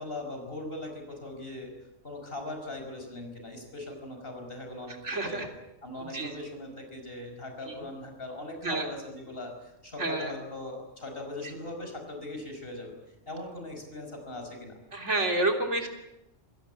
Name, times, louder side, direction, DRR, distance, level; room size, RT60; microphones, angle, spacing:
voice 1, 0.0-1.7 2.0-5.4 5.8-12.9 13.3-14.8, left 2 dB, 50° left, 4 dB, 5.6 m, -40 dB
voice 2, 5.0-5.5 6.0-6.3 7.7-7.8 8.6-8.9 10.0-10.3 14.9-15.9, right 2 dB, 70° right, 3 dB, 3.6 m, -29 dB
26.5 x 17.5 x 8.4 m, 0.93 s
omnidirectional pair, 1.3 m